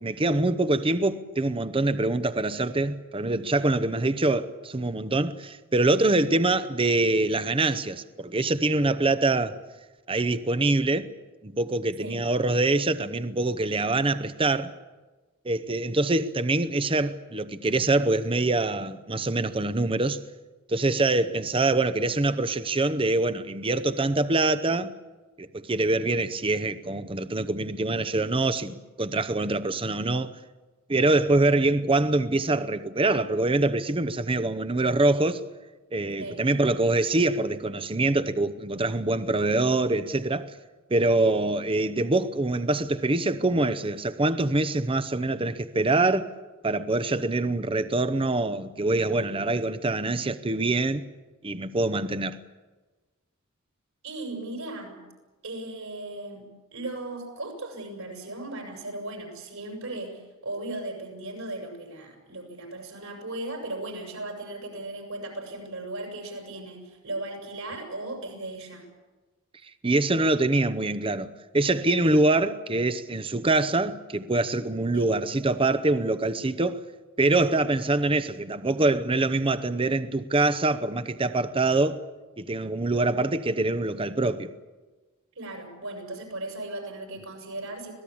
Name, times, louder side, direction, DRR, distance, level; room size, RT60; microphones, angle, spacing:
voice 1, 0.0-9.6 10.1-11.1 11.4-14.7 15.4-20.2 20.7-24.9 25.4-30.3 30.9-35.4 35.9-40.5 40.9-46.3 46.6-51.0 51.4-52.4 69.8-76.8 77.2-82.0 82.4-84.5, right 2 dB, 25° right, 0.8 m, -24 dB
voice 2, 12.0-12.3 36.2-36.5 54.0-55.0 55.4-68.8 74.9-75.1 85.3-87.9, right 2 dB, 75° right, 7.4 m, -37 dB
25.5 x 19.0 x 8.6 m
head